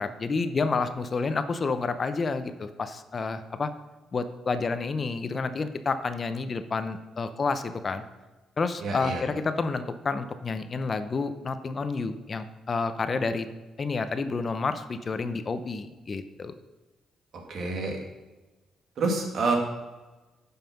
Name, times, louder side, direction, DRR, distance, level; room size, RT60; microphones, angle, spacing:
voice 1, 0.0-3.7 4.1-8.0 8.6-13.5 13.8-16.6, left 4 dB, 40° left, 11 dB, 0.7 m, -29 dB
voice 2, 8.8-9.2 17.5-18.0 19.0-19.5, right 3 dB, 60° right, 2 dB, 2.2 m, -27 dB
9.1 x 5.6 x 5.8 m, 1.2 s
cardioid pair, 90°, 0 cm